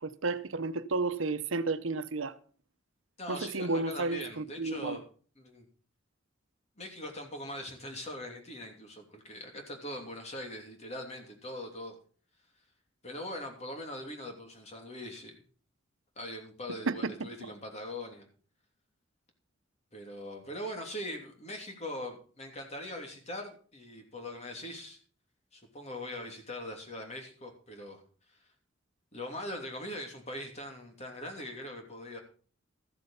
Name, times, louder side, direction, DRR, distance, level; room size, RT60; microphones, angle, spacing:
voice 1, 0.0-2.4 3.3-5.0 16.9-17.3, right 3 dB, 85° right, 0.9 m, -32 dB
voice 2, 3.2-5.0 5.4-5.7 6.8-12.0 13.0-15.3 16.2-18.3 19.9-25.0 25.5-28.0 29.1-32.2, left 1 dB, 35° left, 2.9 m, -41 dB
13.5 x 7.9 x 5.6 m
head